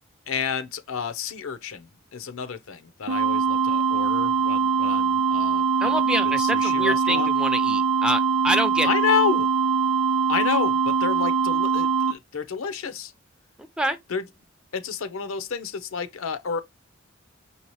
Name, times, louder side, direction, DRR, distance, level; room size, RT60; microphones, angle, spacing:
voice 1, 0.3-6.0 6.4-7.3 8.8-9.5 10.3-13.1 14.1-14.2 14.7-16.6, left 6 dB, 75° left, 0.6 m, -30 dB
sound 1, 3.1-12.1, right 5 dB, 85° right, 0.6 m, -22 dB
voice 2, 5.8-8.9 13.8-14.0, right 1 dB, 5° right, 0.4 m, -26 dB
5.4 x 2.8 x 3.0 m
head